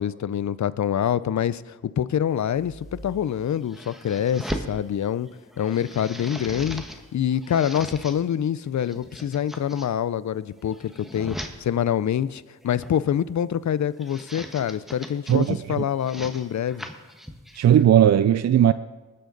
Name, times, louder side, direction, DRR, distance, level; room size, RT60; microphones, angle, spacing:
voice 1, 0.0-5.3 5.6-6.8 7.1-16.9, left 9 dB, 60° left, 17 dB, 0.5 m, -26 dB
sound 1, 2.5-4.7 5.3-7.0 7.3-8.2 8.7-9.9 10.5-11.5 12.6-13.0 13.8-15.5 15.9-17.8, equal, ahead, 1.3 m, -38 dB
voice 2, 15.3-15.9 17.6-18.7, right 10 dB, 55° right, 14 dB, 0.4 m, -17 dB
19.0 x 7.7 x 4.0 m, 1.2 s
cardioid pair, 55°, 33 cm